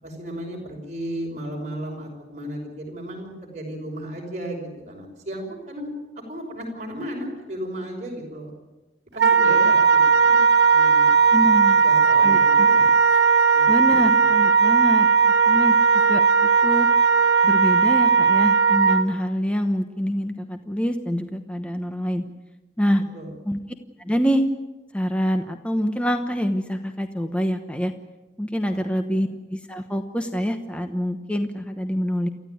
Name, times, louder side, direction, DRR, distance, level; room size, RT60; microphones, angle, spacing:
voice 1, 0.0-8.5 9.1-10.4 10.7-11.1 11.8-12.9 13.1-13.2 13.5-14.0 23.1-23.3 28.7-28.8 29.1-29.2, equal, 40° right, 0 dB, 5.8 m, -34 dB
Wind instrument woodwind instrument, 9.2-19.1, right 5 dB, 90° right, 1.2 m, -17 dB
voice 2, 11.3-11.8 12.2-12.7 13.7-15.1 15.5-15.8 16.1-16.2 16.6-16.9 17.4-22.2 22.8-23.0 23.4-23.6 24.0-24.4 24.9-27.9 28.4-32.3, equal, 5° left, 6 dB, 1.0 m, -25 dB
28.5 x 14.5 x 9.4 m, 1.1 s
head